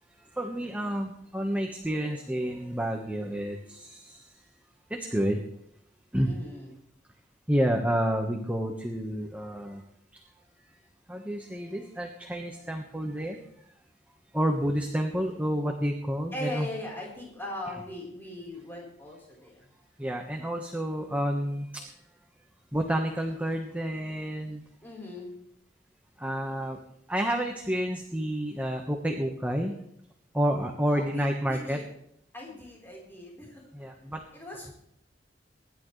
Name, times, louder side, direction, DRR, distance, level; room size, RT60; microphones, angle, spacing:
voice 1, 0.2-4.3 4.9-5.4 6.1-6.3 7.5-9.8 11.1-13.4 14.3-16.7 20.0-21.9 22.7-24.6 26.2-26.8 27.1-29.8 30.3-31.8 33.7-34.2, equal, 10° right, 2 dB, 1.3 m, -29 dB
voice 2, 6.2-6.8 16.3-19.6 24.8-25.4 30.9-31.9 32.3-33.6 34.3-34.7, left 1 dB, 15° left, -3 dB, 4.2 m, -39 dB
25.5 x 11.5 x 3.3 m, 0.73 s
head